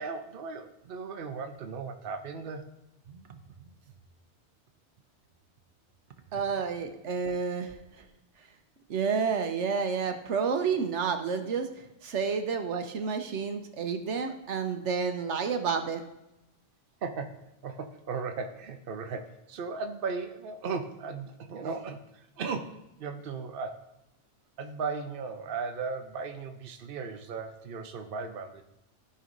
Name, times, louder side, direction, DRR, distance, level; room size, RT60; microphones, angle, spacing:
voice 1, 0.0-2.7 3.1-3.7 17.0-22.1 22.4-23.8 24.6-28.6, right 4 dB, 55° right, 5 dB, 0.9 m, -37 dB
voice 2, 6.3-8.1 8.4-8.5 8.9-16.0, right 5 dB, 80° right, 6 dB, 1.2 m, -30 dB
14.0 x 5.5 x 2.6 m, 0.91 s
omnidirectional pair, 1.2 m